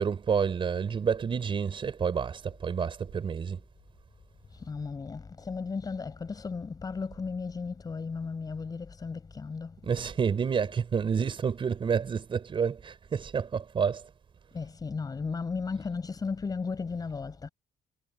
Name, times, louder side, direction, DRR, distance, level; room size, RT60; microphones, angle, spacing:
voice 1, 0.0-3.6 9.8-14.1, right 6 dB, 40° right, 5.6 m, -29 dB
voice 2, 4.5-9.7 14.5-17.5, left 4 dB, 30° left, 5.7 m, -35 dB
cardioid pair, 110°, 13 cm